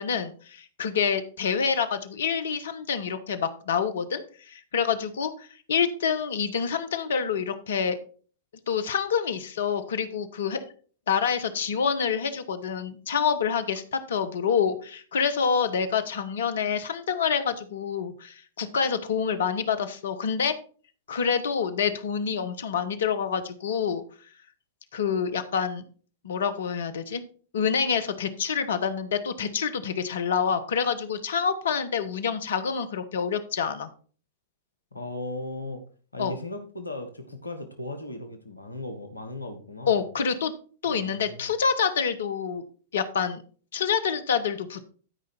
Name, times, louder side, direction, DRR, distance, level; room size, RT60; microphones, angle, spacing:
voice 1, 0.0-8.0 8.7-10.7 11.1-20.5 21.1-24.0 24.9-25.8 26.2-27.2 27.5-33.9 36.2-36.4 39.9-40.5 40.8-42.6 42.9-43.4 43.7-44.9, left 6 dB, 65° left, 11 dB, 1.1 m, -27 dB
voice 2, 34.9-35.8 36.1-40.0 40.9-41.5, left 1 dB, 90° left, 7 dB, 1.4 m, -37 dB
12.5 x 5.3 x 4.3 m, 0.41 s
figure-of-eight pair, 100°, 0 cm